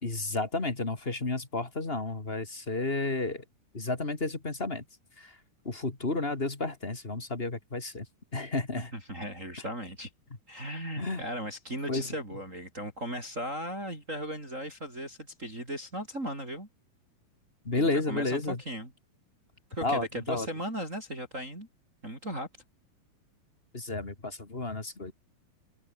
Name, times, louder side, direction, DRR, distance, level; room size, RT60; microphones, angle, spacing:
voice 1, 0.0-3.4 3.7-4.8 5.2-5.4 5.6-8.1 8.3-8.9 11.0-11.2 11.9-12.1 17.6-18.6 19.8-20.5 23.7-25.1, left 3 dB, 20° left, 2.0 m, -31 dB
voice 2, 8.9-10.1 10.5-16.7 17.8-18.9 19.7-21.7 22.0-22.5, equal, 20° right, 6.7 m, -37 dB
open air
omnidirectional pair, 4.5 m